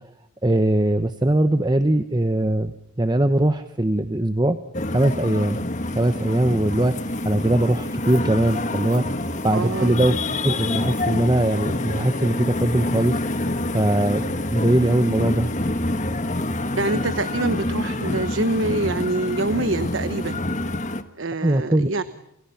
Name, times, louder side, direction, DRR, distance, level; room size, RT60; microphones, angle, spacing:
voice 1, 0.4-4.6 4.9-5.6 5.9-10.2 10.4-13.2 13.7-14.2 14.5-15.5 21.4-21.9, right 1 dB, 20° right, 10 dB, 0.9 m, -21 dB
sound 1, 4.7-21.0, left 1 dB, 35° left, 1.4 m, -27 dB
voice 2, 9.5-9.9 16.8-20.4 21.2-22.0, right 2 dB, 65° right, 12 dB, 1.1 m, -25 dB
29.5 x 29.0 x 5.8 m, 0.80 s
head